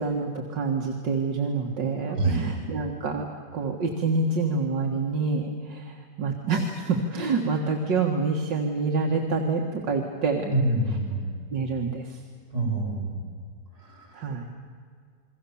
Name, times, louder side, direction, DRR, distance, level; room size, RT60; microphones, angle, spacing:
voice 1, 0.0-3.3 3.5-10.5 11.5-12.2 14.1-14.5, right 4 dB, 85° right, 1 dB, 2.5 m, -27 dB
voice 2, 2.1-2.4 10.5-11.3 12.5-13.2 13.9-14.1, right 2 dB, 60° right, -3 dB, 7.4 m, -26 dB
28.5 x 22.5 x 7.2 m, 2.1 s
omnidirectional pair, 1.9 m